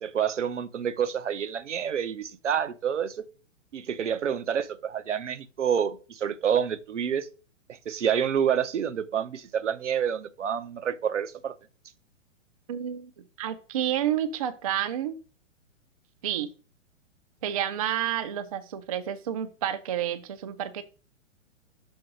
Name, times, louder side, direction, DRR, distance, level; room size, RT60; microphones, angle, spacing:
voice 1, 0.0-3.2 3.7-7.3 7.9-11.5, right 8 dB, 70° right, 0.7 m, -28 dB
voice 2, 12.7-13.1 13.4-15.2 16.2-16.5 17.4-20.8, right 10 dB, 30° right, 0.4 m, -30 dB
6.2 x 3.7 x 4.8 m
figure-of-eight pair, 115°, 38 cm